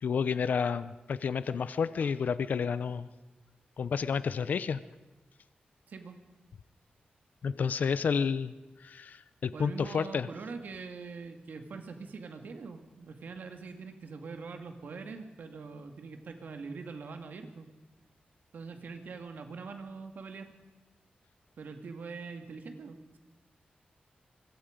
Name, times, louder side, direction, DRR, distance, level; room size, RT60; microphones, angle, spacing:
voice 1, 0.0-3.1 3.8-4.8 7.4-8.5 8.8-10.3, left 6 dB, 65° left, 14 dB, 0.7 m, -30 dB
voice 2, 5.9-6.2 9.5-17.7 18.5-20.5 21.6-23.2, right 4 dB, 75° right, 6 dB, 2.2 m, -43 dB
25.0 x 22.5 x 5.2 m, 1.1 s
wide cardioid pair, 180°, 3 cm